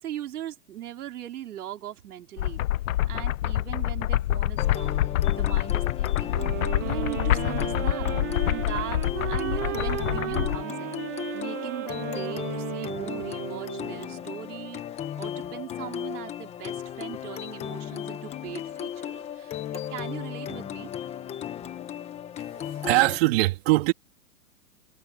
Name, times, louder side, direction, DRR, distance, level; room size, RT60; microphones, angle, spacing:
voice 1, 0.0-2.6 3.1-6.4 6.8-8.1 8.5-11.0 11.3-14.8 15.2-19.6 19.9-20.9, right 12 dB, 70° right, 4.8 m, -39 dB
sound 1, 2.4-10.6, left 14 dB, 60° left, 1.0 m, -26 dB
sound 2, 4.6-23.2, left 10 dB, 15° left, 1.1 m, -36 dB
sound 3, 6.3-14.3, right 14 dB, 15° right, 0.4 m, -35 dB
voice 2, 22.4-23.9, right 21 dB, 40° right, 3.4 m, -23 dB
hypercardioid pair, 160°, 46 cm